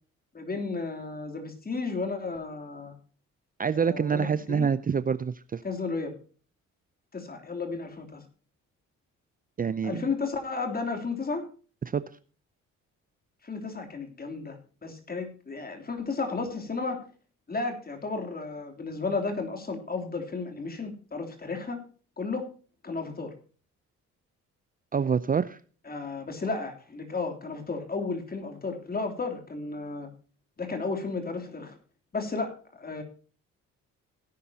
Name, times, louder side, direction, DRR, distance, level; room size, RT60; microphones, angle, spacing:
voice 1, 0.3-2.9 3.7-4.7 5.6-6.1 7.1-8.2 9.8-11.4 13.4-17.0 17.5-21.8 22.2-22.5 22.8-23.3 25.9-30.1 30.6-31.8 32.1-33.0, left 4 dB, 30° left, 4 dB, 3.2 m, -33 dB
voice 2, 3.6-5.6 9.6-10.1 11.8-12.0 24.9-25.6, right 6 dB, 30° right, 15 dB, 0.6 m, -26 dB
17.0 x 9.9 x 2.8 m, 0.40 s
cardioid pair, 90°, 30 cm